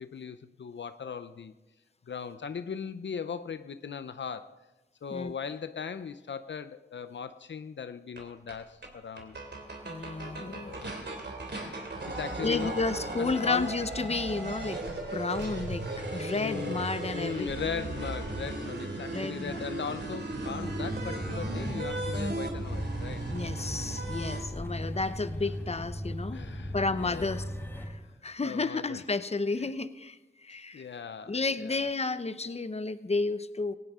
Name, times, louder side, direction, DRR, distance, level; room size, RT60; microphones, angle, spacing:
voice 1, 0.0-1.5 2.1-4.5 5.0-9.4 10.4-11.3 11.5-12.8 13.2-13.7 16.3-16.8 17.1-23.3 26.3-27.3 28.4-29.0 30.7-31.9, left 6 dB, 80° left, 11 dB, 0.6 m, -39 dB
sound 1, 8.2-8.3 8.5-8.6 8.8-8.9 9.2-24.4, right 2 dB, 65° right, 3.0 m, -36 dB
voice 2, 9.8-10.7 12.4-17.5 19.1-19.6 23.3-26.4 26.7-27.4 27.8-30.9 31.3-33.8, left 3 dB, 35° left, 13 dB, 0.8 m, -32 dB
sound 2, 20.4-27.9, equal, 10° left, 5.1 m, -37 dB
18.0 x 17.0 x 3.7 m, 1.1 s
cardioid pair, 50°, 19 cm